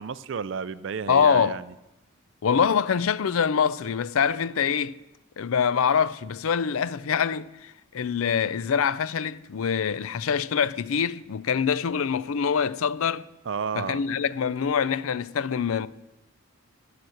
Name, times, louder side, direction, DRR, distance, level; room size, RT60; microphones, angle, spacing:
voice 1, 0.0-1.6 13.5-14.0, right 6 dB, 55° right, 0.4 m, -31 dB
voice 2, 1.1-1.6 2.4-5.0 5.4-13.2 13.7-15.9, left 7 dB, 75° left, 0.4 m, -24 dB
13.0 x 6.0 x 7.8 m
head